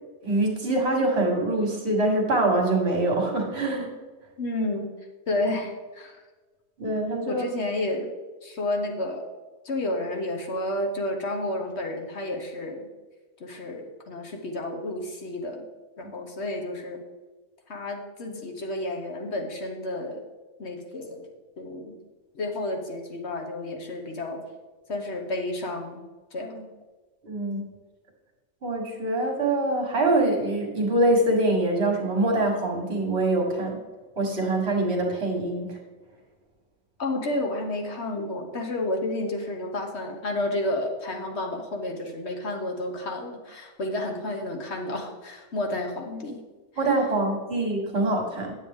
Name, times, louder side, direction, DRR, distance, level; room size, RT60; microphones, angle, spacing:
voice 1, 0.2-3.9 6.8-7.4 27.2-27.7 28.6-33.8 34.2-35.8 46.8-48.6, right 2 dB, 40° right, 1 dB, 1.7 m, -24 dB
voice 2, 4.4-4.9 5.3-6.2 7.2-8.2 8.4-9.3 9.6-12.9 13.4-15.6 16.0-17.0 17.7-20.2 20.6-21.3 21.6-22.0 22.3-24.4 24.9-26.0 26.3-26.7 37.0-46.4, left 1 dB, 45° left, 3 dB, 1.1 m, -31 dB
9.4 x 7.7 x 3.6 m, 1.3 s
omnidirectional pair, 1.8 m